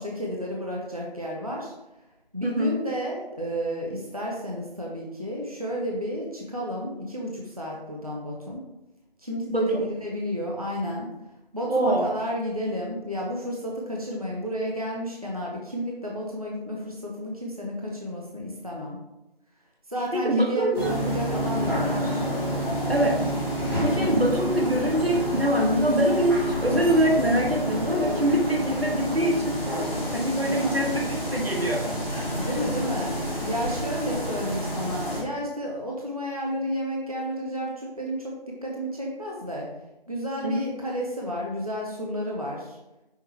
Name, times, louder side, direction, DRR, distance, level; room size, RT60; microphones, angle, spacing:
voice 1, 0.0-1.7 2.3-8.6 9.2-11.1 11.5-19.0 19.9-22.3 24.0-24.3 30.5-30.9 32.4-33.2 33.4-39.7 40.1-42.8, equal, 40° right, -3 dB, 0.6 m, -31 dB
voice 2, 2.4-2.8 9.5-9.8 11.7-12.1 20.1-20.9 22.9-23.2 23.8-29.6 30.1-31.1 31.3-31.9 40.4-40.6, right 1 dB, 90° right, 0 dB, 1.2 m, -24 dB
sound 1, 20.7-35.2, equal, 25° left, 1.5 m, -29 dB
5.7 x 3.2 x 2.9 m, 0.95 s
figure-of-eight pair, 175°, 30 cm